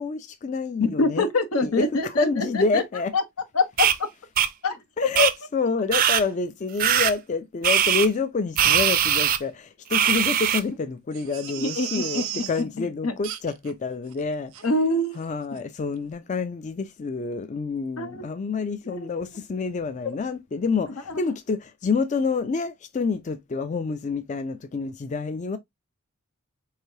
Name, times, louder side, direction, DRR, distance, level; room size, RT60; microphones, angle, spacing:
voice 1, 0.0-1.2 1.6-3.1 5.0-14.7 15.2-25.6, left 4 dB, 35° left, 0.3 m, -28 dB
voice 2, 0.8-2.8 3.1-3.2 3.5-4.1 4.6-5.3 11.6-12.5 12.8-13.1 14.6-15.2 18.0-18.2 18.8-19.1, left 2 dB, 85° left, 0.9 m, -25 dB
sound 1, 3.8-3.9 4.4-4.5 5.1-5.3 5.9-6.2 6.8-7.1 7.6-8.1 8.6-9.4 9.9-10.6, right 9 dB, 40° right, 0.4 m, -20 dB
Crying sobbing, 11.1-12.6 13.2-13.7 14.1-14.2 14.5-14.7 15.1-15.3 15.5-15.6, right 10 dB, 80° right, 0.7 m, -35 dB
4.4 x 3.3 x 2.7 m
head